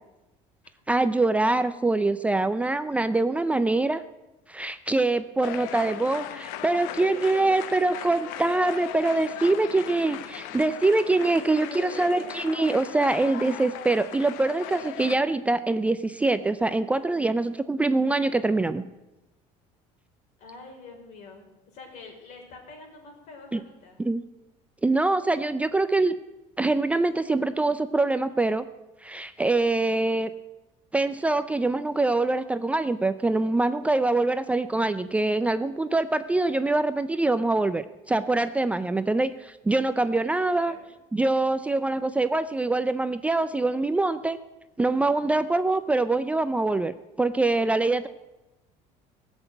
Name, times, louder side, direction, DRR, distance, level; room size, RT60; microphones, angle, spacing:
voice 1, 0.9-4.0 4.5-18.8 23.5-23.6 24.0-24.2 24.8-26.1 26.6-28.7 29.0-30.3 30.9-40.7 41.1-44.4 44.8-46.9 47.2-48.1, right 2 dB, 10° right, 11 dB, 0.4 m, -24 dB
sound 1, 5.4-15.2, left 11 dB, 90° left, 0.9 m, -38 dB
voice 2, 11.1-12.3 20.4-24.0 40.4-40.9, left 3 dB, 60° left, 2 dB, 4.6 m, -45 dB
16.0 x 8.0 x 9.1 m, 1.0 s
cardioid pair, 145°, 14 cm